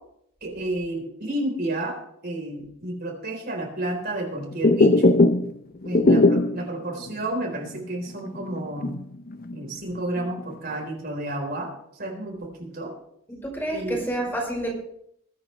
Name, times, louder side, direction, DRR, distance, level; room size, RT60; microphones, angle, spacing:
voice 1, 0.4-2.0 2.2-5.0 5.8-9.0 9.5-12.9 13.7-14.0, right 1 dB, 50° right, 2 dB, 4.0 m, -31 dB
sound 1, 4.5-5.6 5.8-6.7 7.1-7.2 7.5-7.7 8.2-9.6 9.9-10.5, left 2 dB, 45° left, 0.6 m, -19 dB
voice 2, 13.4-14.7, right 1 dB, 10° left, -1 dB, 5.1 m, -28 dB
21.5 x 9.6 x 3.3 m, 0.72 s
head